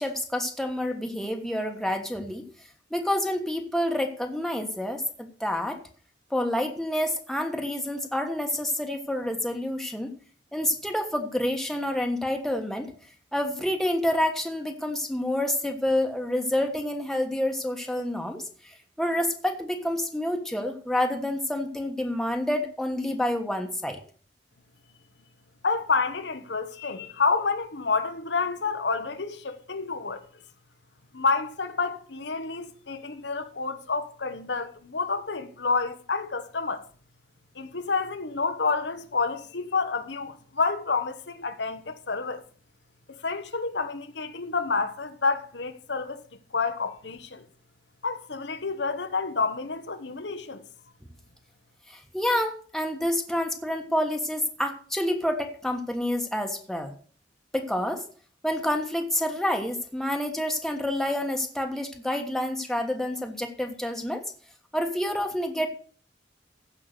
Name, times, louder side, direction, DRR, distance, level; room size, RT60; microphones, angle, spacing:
voice 1, 0.0-2.5 2.9-5.8 6.3-10.1 10.5-12.9 13.3-24.0 51.9-56.9 57.5-58.0 58.4-64.2 64.7-65.7, left 1 dB, ahead, 1.3 m, -28 dB
voice 2, 25.6-30.3 31.1-36.9 37.5-42.4 43.1-46.2 46.5-47.5 48.0-50.6, left 4 dB, 80° left, 1.3 m, -29 dB
15.0 x 5.6 x 6.7 m
head